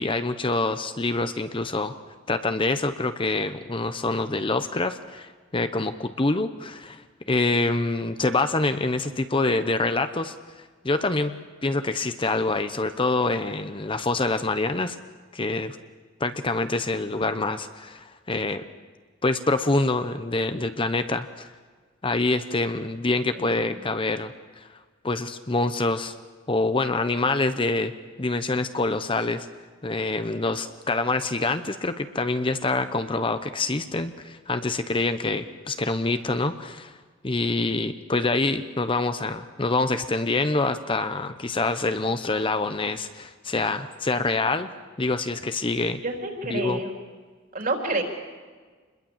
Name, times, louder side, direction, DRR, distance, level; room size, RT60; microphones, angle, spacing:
voice 1, 0.0-1.9 2.3-10.3 10.8-15.0 15.3-15.8 16.2-18.6 19.2-21.5 22.0-24.7 25.0-26.1 26.5-27.9 28.2-29.5 29.8-37.0 37.2-44.7 45.0-46.0 46.4-46.8, left 3 dB, 25° left, 10 dB, 0.8 m, -26 dB
voice 2, 23.3-23.8 44.2-44.4 46.0-46.9 47.5-48.0, right 2 dB, 45° right, 3 dB, 3.9 m, -29 dB
27.5 x 21.5 x 7.3 m, 1.5 s
head